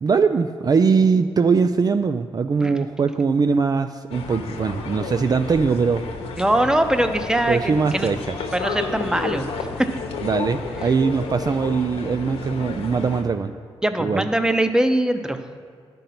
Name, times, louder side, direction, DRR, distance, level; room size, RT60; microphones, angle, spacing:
voice 1, 0.0-6.0 7.5-8.3 10.2-13.5 14.0-14.3, right 5 dB, 40° right, 8 dB, 0.4 m, -21 dB
Busy Street Ambience, 4.1-13.2, left 4 dB, 85° left, 1.0 m, -32 dB
voice 2, 6.4-8.1 8.5-9.5 9.8-9.9 13.8-15.4, right 1 dB, 5° right, 8 dB, 0.8 m, -21 dB
11.5 x 5.3 x 5.8 m, 2.1 s
cardioid pair, 60°, 10 cm